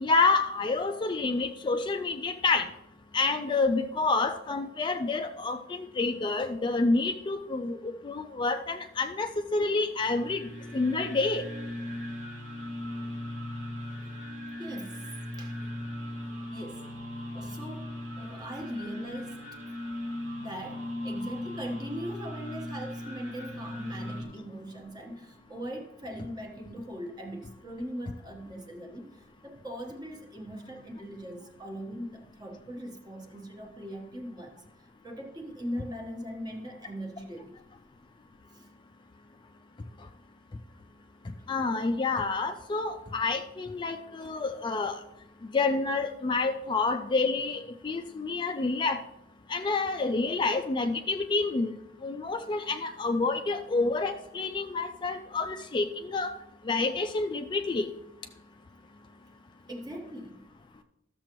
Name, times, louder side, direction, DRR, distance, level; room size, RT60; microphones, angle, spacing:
voice 1, 0.0-2.7 3.1-11.4 41.5-45.0 45.5-49.0 49.5-56.3 56.6-57.9, left 3 dB, 25° left, 6 dB, 0.3 m, -28 dB
sound 1, 10.0-24.2, left 1 dB, 80° right, 2.0 m, -38 dB
voice 2, 14.6-15.0 15.4-15.6 16.5-16.9 17.3-17.9 18.2-19.4 20.4-34.6 35.0-37.5 38.5-38.7 59.7-60.4, equal, 20° right, 3 dB, 1.1 m, -40 dB
13.0 x 6.8 x 3.0 m, 0.88 s
head